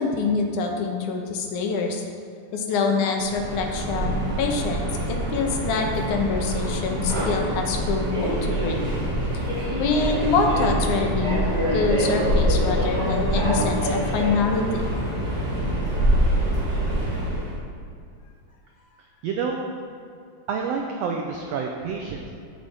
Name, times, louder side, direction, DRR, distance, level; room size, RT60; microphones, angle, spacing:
voice 1, 0.0-2.0 2.5-8.8 9.8-11.5 11.7-14.8, left 4 dB, 80° left, 2 dB, 2.3 m, -25 dB
Subway metro underground, 3.2-17.5, right 1 dB, 35° right, 2.3 m, -25 dB
voice 2, 19.2-19.6 20.5-22.3, right 5 dB, 85° right, 1 dB, 1.4 m, -28 dB
8.2 x 7.6 x 4.2 m, 2.4 s
omnidirectional pair, 3.6 m